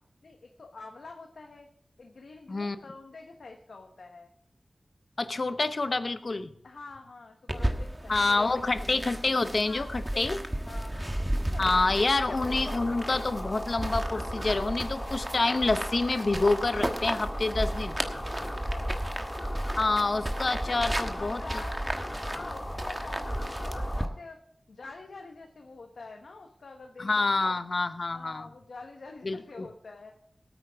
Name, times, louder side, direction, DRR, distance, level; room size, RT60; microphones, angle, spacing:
voice 1, 0.2-1.7 2.0-4.3 6.6-8.6 9.6-12.1 18.4-19.0 20.1-21.8 22.3-24.4 24.7-27.5 28.1-30.1, left 3 dB, 90° left, 3 dB, 1.1 m, -46 dB
voice 2, 5.2-6.5 8.1-10.4 11.6-18.0 19.8-21.4 27.0-28.5 29.2-29.7, left 3 dB, 55° left, 10 dB, 0.8 m, -27 dB
sound 1, 7.5-24.1, right 1 dB, 15° right, 1.3 m, -34 dB
sound 2, 12.2-24.1, left 1 dB, 25° left, 2.4 m, -40 dB
18.5 x 9.0 x 3.5 m, 0.66 s
wide cardioid pair, 70°, 0 cm